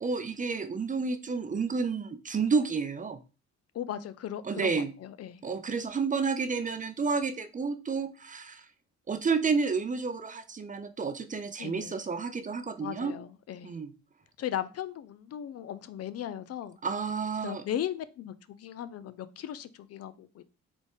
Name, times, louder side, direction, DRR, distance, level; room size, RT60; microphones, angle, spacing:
voice 1, 0.0-3.2 4.4-4.9 5.4-8.7 9.1-13.1 13.6-13.9 16.8-17.6, right 5 dB, 25° right, 10 dB, 0.5 m, -30 dB
voice 2, 3.7-5.4 11.6-12.0 12.8-13.7 14.4-16.8 17.4-20.4, left 10 dB, 55° left, 14 dB, 0.4 m, -37 dB
3.9 x 3.5 x 3.6 m, 0.33 s
cardioid pair, 90°, 30 cm